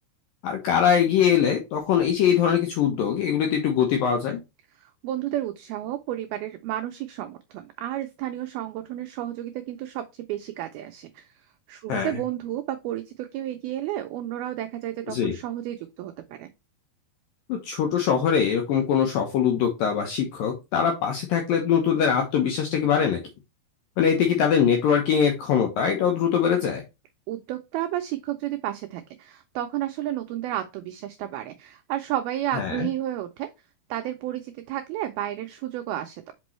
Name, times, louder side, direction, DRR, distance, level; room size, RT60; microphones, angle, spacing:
voice 1, 0.4-4.4 11.9-12.1 15.1-15.4 17.5-23.2 24.0-26.8 32.5-32.9, left 8 dB, 80° left, 2.0 m, -22 dB
voice 2, 4.8-16.5 27.3-33.5 33.9-36.3, right 12 dB, 90° right, 2.1 m, -32 dB
6.0 x 5.3 x 3.1 m
omnidirectional pair, 5.1 m